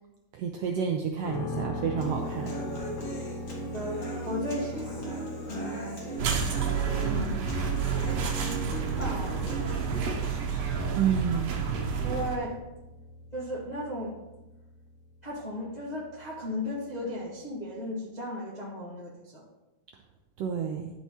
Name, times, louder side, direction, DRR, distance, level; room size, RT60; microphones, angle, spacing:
voice 1, 0.3-2.6 10.9-11.5 20.4-20.9, right 7 dB, 80° right, 3 dB, 1.4 m, -29 dB
sound 1, 1.2-17.1, left 2 dB, 75° left, 3.1 m, -42 dB
Human voice / Acoustic guitar, 2.0-10.0, right 2 dB, 45° left, 2.0 m, -38 dB
voice 2, 3.5-5.2 5.5-6.4 7.0-8.0 9.0-10.0 12.0-12.5 13.3-14.2 15.2-19.4, left 1 dB, 25° left, -6 dB, 0.9 m, -36 dB
sound 2, 6.2-12.4, right 6 dB, 65° right, 1.9 m, -29 dB
11.0 x 4.6 x 4.3 m, 1.0 s
omnidirectional pair, 3.4 m